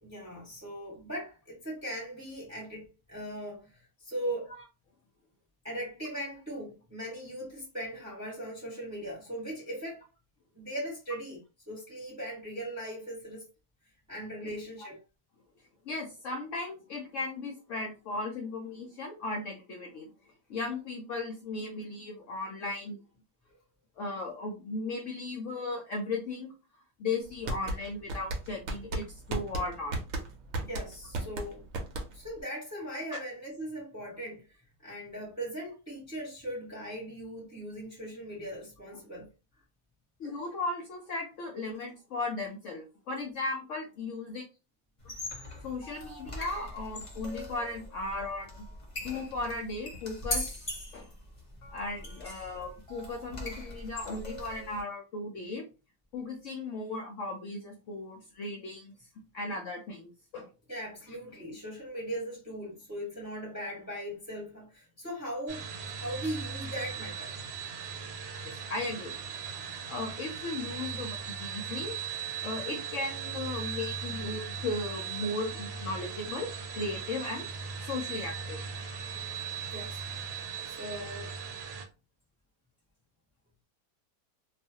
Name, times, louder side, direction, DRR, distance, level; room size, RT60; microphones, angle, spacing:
voice 1, 0.0-4.5 5.6-10.0 10.5-11.4 11.7-13.5 14.1-15.0 30.6-31.6 32.1-34.5 34.8-39.3 60.7-65.6 66.0-67.3 79.6-80.0 80.7-81.3, equal, 10° right, 0.9 m, -39 dB
voice 2, 15.8-20.1 20.5-23.0 24.0-26.5 27.0-30.0 38.9-39.0 40.2-44.4 45.0-45.1 45.6-48.7 49.0-50.4 50.9-51.1 51.7-55.6 56.1-58.9 59.3-60.5 68.4-69.4 69.9-72.0 72.4-77.5 77.8-78.6, left 3 dB, 65° left, 0.8 m, -36 dB
sound 1, 27.2-32.4, right 2 dB, 65° right, 0.9 m, -35 dB
sound 2, 45.0-54.8, left 1 dB, 35° left, 0.5 m, -41 dB
sound 3, 65.5-81.9, right 7 dB, 85° right, 1.2 m, -38 dB
2.4 x 2.4 x 2.7 m
omnidirectional pair, 1.7 m